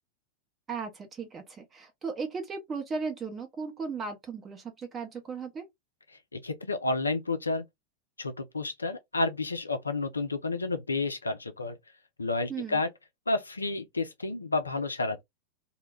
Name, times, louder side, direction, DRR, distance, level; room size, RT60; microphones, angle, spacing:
voice 1, 0.7-5.7 12.5-12.8, right 5 dB, 20° right, 0.6 m, -36 dB
voice 2, 6.3-7.6 8.2-11.8 12.2-12.9 13.3-15.2, left 3 dB, 80° left, 0.4 m, -30 dB
2.1 x 2.1 x 3.2 m
figure-of-eight pair, 90°, 0 cm